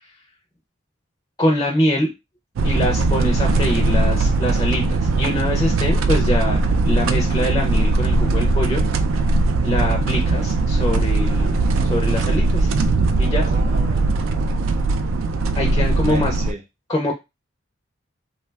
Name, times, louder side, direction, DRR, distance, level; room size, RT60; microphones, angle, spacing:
voice 1, 1.4-2.1 2.6-8.8 9.6-11.6 11.9-12.7 13.2-13.5 15.5-16.4 16.9-17.1, left 1 dB, 20° left, 2 dB, 0.4 m, -24 dB
sound 1, 2.6-16.5, right 3 dB, 80° right, 0.3 m, -19 dB
voice 2, 13.2-15.1 16.1-16.6, right 1 dB, 35° right, 5 dB, 0.6 m, -36 dB
2.6 x 2.3 x 3.2 m, 0.23 s
head